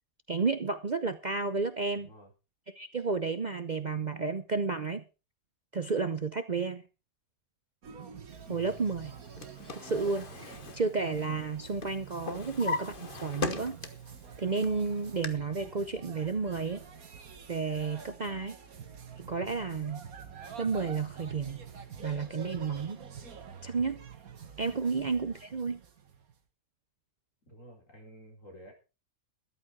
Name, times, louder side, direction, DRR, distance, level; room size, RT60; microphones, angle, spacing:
voice 1, 0.3-2.1 2.8-5.0 5.7-6.8 8.5-9.1 9.7-13.8 14.4-16.8 17.5-18.6 19.2-20.1 20.6-21.6 22.0-23.0 23.6-24.0 24.6-25.8, right 4 dB, 40° right, 10 dB, 0.8 m, -32 dB
sound 1, 7.8-26.4, right 7 dB, 85° right, 1.9 m, -47 dB
Drawer open or close, 9.1-11.5 11.8-14.2 14.6-15.3, left 4 dB, 40° left, 1.3 m, -38 dB
voice 2, 27.5-28.7, equal, 65° left, 1 dB, 4.9 m, -51 dB
13.5 x 11.5 x 4.6 m, 0.32 s
omnidirectional pair, 1.5 m